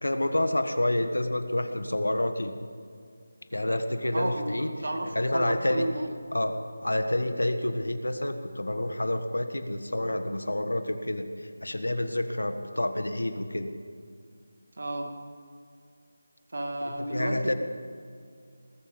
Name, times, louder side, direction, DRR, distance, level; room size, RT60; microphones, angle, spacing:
voice 1, 0.0-2.5 3.5-4.7 5.1-5.9 6.3-6.6 6.8-13.7 16.9-17.5, left 1 dB, 90° left, 8 dB, 1.5 m, -28 dB
voice 2, 4.1-4.5 4.8-6.1 14.8-15.2 16.5-17.5, right 1 dB, 65° right, 4 dB, 2.4 m, -32 dB
19.5 x 13.0 x 5.3 m, 2.2 s
figure-of-eight pair, 165°, 0 cm